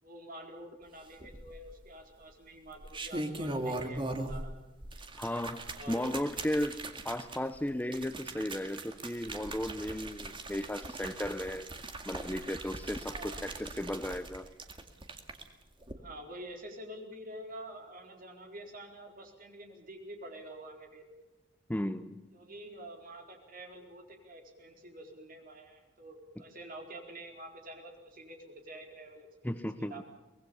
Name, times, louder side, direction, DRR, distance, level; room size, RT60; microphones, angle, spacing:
voice 1, 0.0-4.5 4.9-5.0 5.7-6.3 13.1-13.4 16.0-21.0 22.3-29.5 29.8-30.0, right 1 dB, 50° right, 3 dB, 4.4 m, -48 dB
sound 1, 1.2-1.9 2.7-4.5 4.8-15.4 15.8-15.9, right 2 dB, 25° right, 2.1 m, -40 dB
voice 2, 5.2-11.7 12.1-14.5 21.7-22.2 29.4-30.0, left 1 dB, 10° left, 12 dB, 0.7 m, -35 dB
24.0 x 20.0 x 7.1 m, 1.1 s
head